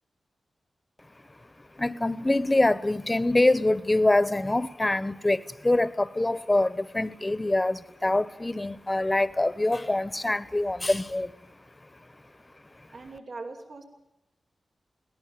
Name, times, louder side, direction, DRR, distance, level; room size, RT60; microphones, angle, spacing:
voice 1, 1.8-11.3, left 2 dB, 25° left, 1.3 m, -25 dB
voice 2, 12.9-13.8, right 3 dB, 75° right, 6.8 m, -40 dB
22.5 x 17.5 x 9.4 m
cardioid pair, 60°, 0 cm